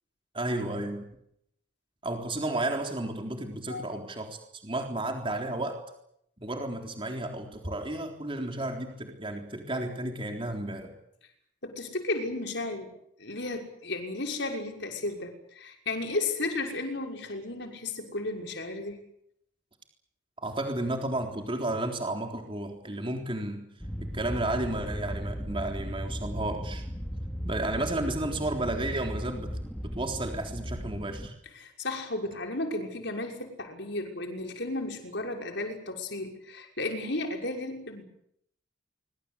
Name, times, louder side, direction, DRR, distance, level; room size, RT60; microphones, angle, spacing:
voice 1, 0.3-1.0 2.0-5.8 6.4-10.9 20.4-23.7 24.0-26.8 27.4-31.3, right 1 dB, 25° right, 3 dB, 3.8 m, -32 dB
voice 2, 3.7-4.0 11.6-12.9 13.2-19.0 31.5-38.0, left 2 dB, 60° left, 3 dB, 6.0 m, -34 dB
sound 1, 23.8-31.3, equal, 5° left, 2.5 m, -36 dB
24.5 x 23.5 x 8.4 m, 0.74 s
head